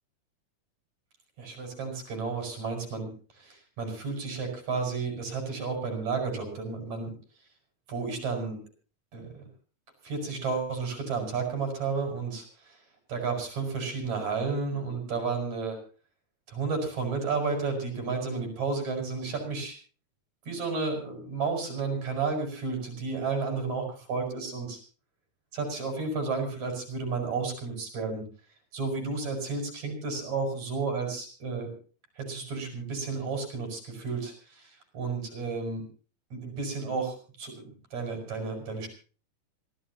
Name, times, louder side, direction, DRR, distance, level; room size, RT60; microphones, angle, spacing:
voice 1, 1.4-7.1 7.9-8.6 9.1-9.5 10.0-12.8 13.1-15.8 16.5-19.8 20.5-24.8 25.5-28.2 28.7-31.7 32.2-35.9 36.3-38.9, right 4 dB, 60° right, 4 dB, 7.5 m, -32 dB
26.0 x 15.5 x 2.9 m, 0.38 s
omnidirectional pair, 3.6 m